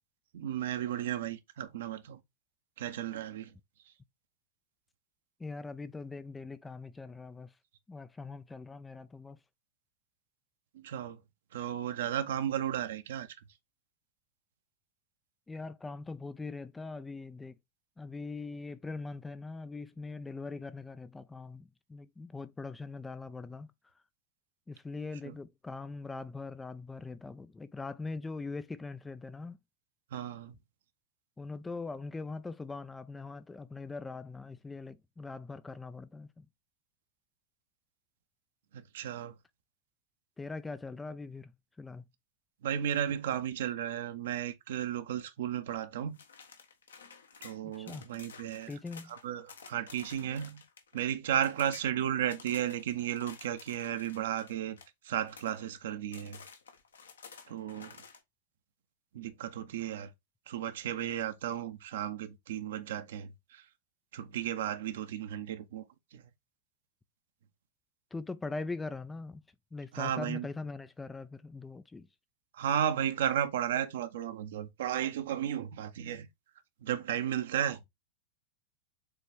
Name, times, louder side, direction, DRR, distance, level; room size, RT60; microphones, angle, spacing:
voice 1, 0.3-2.2 2.8-3.5 10.7-11.2 11.5-13.3 25.2-25.3 30.1-30.5 38.7-39.3 42.6-46.2 47.4-48.7 49.1-50.6 50.9-54.8 55.0-56.4 57.5-58.0 59.1-60.1 60.5-63.6 64.1-65.8 66.1-66.2 69.9-70.5 72.5-76.3 76.8-77.9, right 10 dB, 60° right, 0.9 m, -34 dB
voice 2, 5.4-7.5 7.9-9.4 15.5-17.6 18.0-23.7 24.7-29.6 31.4-36.5 40.4-42.0 47.6-48.1 48.7-49.1 68.1-69.4 69.7-72.1, left 3 dB, 10° left, 0.4 m, -41 dB
sound 1, 46.1-51.1 51.4-51.9 52.3-55.8 56.1-58.2, left 6 dB, 70° left, 1.2 m, -52 dB
6.8 x 4.1 x 3.5 m
figure-of-eight pair, 90°, 0 cm